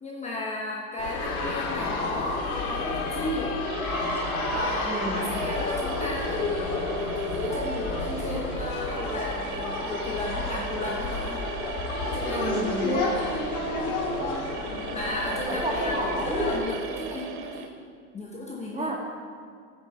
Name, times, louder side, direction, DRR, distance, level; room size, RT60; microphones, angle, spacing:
voice 1, 0.0-3.6 4.0-4.1 4.5-11.4 12.0-12.5 12.8-13.3 14.9-17.7 18.1-18.9, left 1 dB, 15° left, -3 dB, 1.2 m, -34 dB
sound 1, 1.0-16.6, left 3 dB, 90° left, 2.7 m, -31 dB
sound 2, 3.6-17.7, right 8 dB, 85° right, 1.5 m, -38 dB
voice 2, 4.8-5.3 12.3-13.0 15.5-16.5 18.7-18.9, right 1 dB, 15° right, -1 dB, 2.1 m, -30 dB
9.8 x 6.9 x 7.2 m, 2.2 s
supercardioid pair, 135°, 42 cm